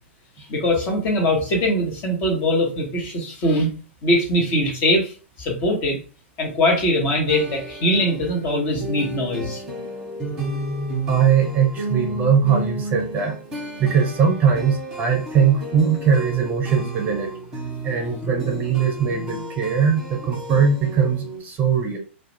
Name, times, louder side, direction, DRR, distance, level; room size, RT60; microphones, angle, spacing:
voice 1, 0.4-3.7 4.0-5.1 5.4-6.0 6.4-9.6, left 1 dB, 35° left, 0 dB, 1.0 m, -21 dB
sound 1, 7.3-21.4, right 1 dB, 10° right, 1.0 m, -32 dB
voice 2, 11.1-13.3 13.8-17.3 17.8-22.0, right 7 dB, 25° right, 1 dB, 0.6 m, -20 dB
2.3 x 2.1 x 2.9 m, 0.36 s
figure-of-eight pair, 105°, 7 cm